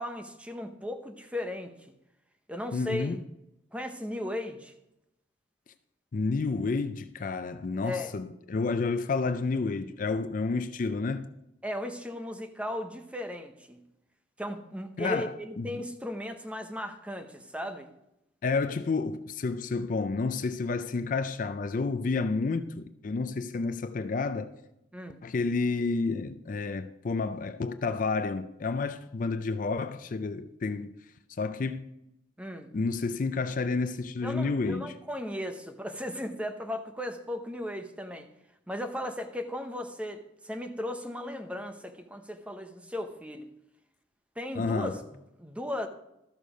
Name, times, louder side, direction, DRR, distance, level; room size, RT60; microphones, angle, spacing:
voice 1, 0.0-1.7 2.5-3.2 3.7-4.7 7.8-8.1 11.6-13.8 14.4-17.9 24.9-25.2 32.4-32.7 34.2-38.3 38.7-43.5 44.4-45.0 45.4-45.9, left 1 dB, 5° right, 0.8 m, -36 dB
voice 2, 2.7-3.2 6.1-11.3 15.0-15.7 18.4-24.5 25.2-30.9 31.3-31.9 32.7-34.9 44.5-45.0, left 4 dB, 45° left, 0.4 m, -30 dB
13.0 x 6.6 x 5.0 m
head